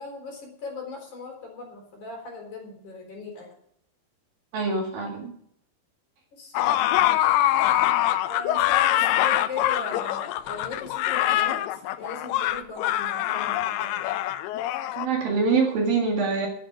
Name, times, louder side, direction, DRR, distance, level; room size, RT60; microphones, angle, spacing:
voice 1, 0.0-3.5 6.3-6.8 8.3-14.0, left 4 dB, 45° left, 1 dB, 5.0 m, -39 dB
voice 2, 4.5-5.3 15.0-16.5, right 4 dB, 60° right, 1 dB, 3.5 m, -24 dB
sound 1, 6.5-15.1, left 13 dB, 80° left, 2.4 m, -24 dB
12.5 x 10.0 x 6.1 m, 0.68 s
omnidirectional pair, 5.2 m